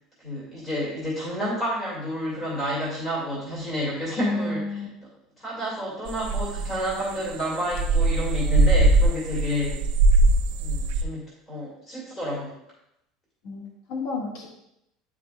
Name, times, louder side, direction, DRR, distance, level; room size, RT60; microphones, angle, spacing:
voice 1, 0.2-5.1 5.4-9.8 10.6-12.5, left 1 dB, 15° left, -7 dB, 2.1 m, -30 dB
voice 2, 4.2-4.9 13.4-14.5, left 2 dB, 80° left, -1 dB, 1.6 m, -31 dB
sound 1, 6.1-11.0, right 2 dB, 85° right, 0.5 m, -21 dB
9.4 x 4.9 x 2.3 m, 0.82 s
cardioid pair, 175°, 0 cm